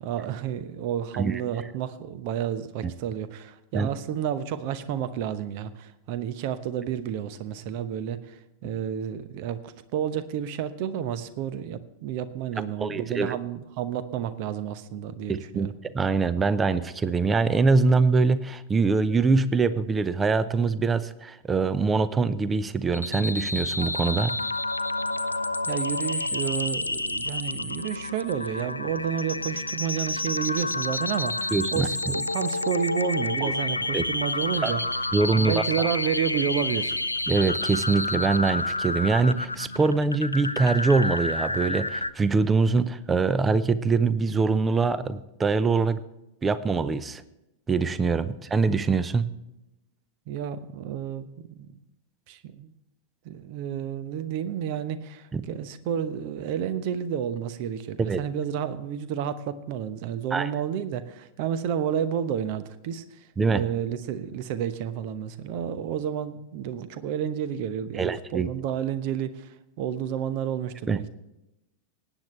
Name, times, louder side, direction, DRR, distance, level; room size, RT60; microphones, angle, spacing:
voice 1, 0.0-15.7 25.7-34.8 35.4-37.0 50.3-51.8 52.3-52.7 53.2-63.0 63.5-71.1, right 9 dB, 45° right, 13 dB, 0.9 m, -31 dB
voice 2, 12.8-13.4 15.3-24.3 31.5-31.9 33.4-33.5 33.9-34.0 34.6-34.7 35.1-35.9 37.3-46.0 46.4-47.2 47.7-49.3 55.3-55.4 58.1-58.2 60.3-60.5 63.4-63.6 68.0-68.5 70.9-71.0, right 4 dB, 15° right, 16 dB, 0.7 m, -23 dB
sound 1, 22.9-42.1, left 2 dB, 85° left, 0.5 m, -29 dB
19.0 x 9.0 x 3.2 m, 0.92 s
figure-of-eight pair, 90°, 0 cm